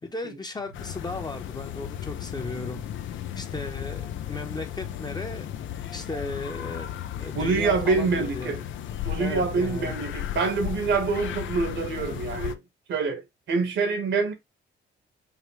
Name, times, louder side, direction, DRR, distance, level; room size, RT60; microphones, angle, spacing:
voice 1, 0.0-5.5 5.9-6.9 7.2-8.6 9.2-9.9, left 2 dB, 20° left, 0.9 m, -36 dB
sound 1, 0.7-12.5, left 10 dB, 75° left, 0.6 m, -35 dB
voice 2, 7.3-8.6 9.0-12.6 12.9-13.2 13.5-14.3, right 4 dB, 70° right, 1.4 m, -26 dB
5.0 x 2.2 x 3.2 m
cardioid pair, 90°, 20 cm